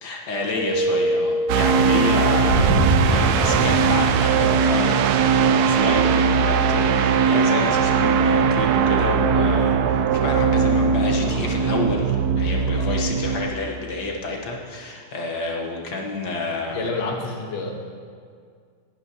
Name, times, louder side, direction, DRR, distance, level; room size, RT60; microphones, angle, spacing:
voice 1, 0.0-16.8, left 3 dB, 85° left, -1 dB, 1.9 m, -29 dB
Keyboard (musical), 0.6-2.6, equal, 20° right, 4.0 m, -25 dB
sound 1, 1.5-13.5, right 6 dB, 75° right, 1.1 m, -19 dB
sound 2, 2.5-5.2, equal, 60° left, 3.8 m, -23 dB
voice 2, 12.7-13.2 16.7-17.7, left 3 dB, 40° left, 1 dB, 1.5 m, -30 dB
19.0 x 10.5 x 2.9 m, 2.1 s
omnidirectional pair, 1.8 m